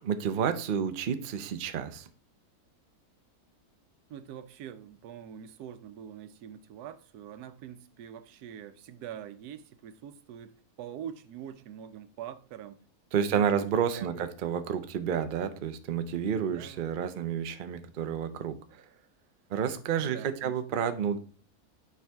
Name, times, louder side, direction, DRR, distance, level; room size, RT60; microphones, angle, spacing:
voice 1, 0.0-2.1 13.1-18.8 19.5-21.2, right 8 dB, 55° right, 0.6 m, -30 dB
voice 2, 4.1-12.8 13.2-13.7 13.9-14.3 16.4-16.9 20.0-20.5, right 9 dB, 90° right, 1.2 m, -44 dB
9.2 x 4.8 x 3.4 m
omnidirectional pair, 1.6 m